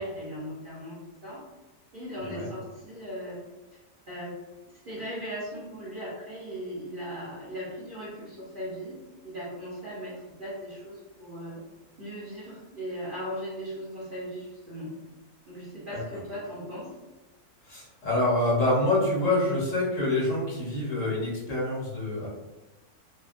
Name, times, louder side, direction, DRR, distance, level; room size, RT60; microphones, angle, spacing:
voice 1, 0.0-1.4 1.9-3.4 4.1-4.4 4.7-11.6 12.0-15.0 15.5-16.9, equal, 45° right, -9 dB, 0.7 m, -38 dB
voice 2, 17.7-22.3, left 1 dB, 60° left, -6 dB, 1.2 m, -26 dB
2.8 x 2.2 x 2.4 m, 1.1 s
omnidirectional pair, 1.6 m